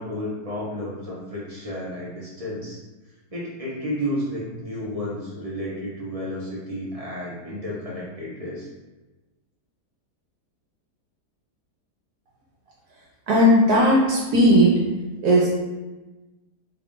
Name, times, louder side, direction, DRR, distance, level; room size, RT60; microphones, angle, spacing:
voice 1, 0.0-2.8 3.3-8.7, equal, 55° right, -7 dB, 0.4 m, -32 dB
voice 2, 13.3-14.7 15.2-15.5, equal, 70° right, -4 dB, 1.1 m, -16 dB
3.4 x 2.4 x 3.6 m, 1.2 s
omnidirectional pair, 1.8 m